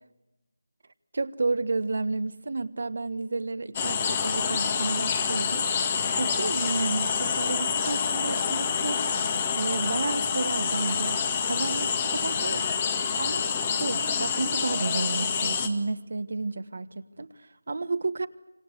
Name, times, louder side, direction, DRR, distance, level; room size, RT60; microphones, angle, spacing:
voice 1, 1.1-5.7 6.2-9.1 9.6-12.6 13.1-18.3, right 3 dB, 55° right, 1.3 m, -31 dB
sound 1, 3.7-15.7, left 6 dB, 25° left, 1.9 m, -27 dB
26.0 x 26.0 x 8.1 m
figure-of-eight pair, 160°, 0 cm